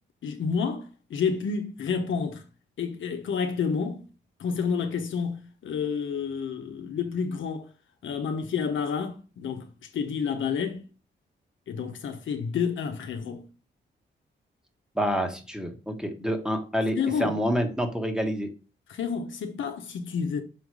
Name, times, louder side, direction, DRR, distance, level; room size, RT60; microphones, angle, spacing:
voice 1, 0.2-2.4 2.8-4.0 4.4-7.7 8.0-9.7 9.9-10.8 11.7-13.4 16.9-17.3 18.9-20.4, left 6 dB, 85° left, 1.0 m, -29 dB
voice 2, 14.9-18.5, equal, 5° right, 1.3 m, -28 dB
6.1 x 3.9 x 4.8 m
cardioid pair, 90°, 19 cm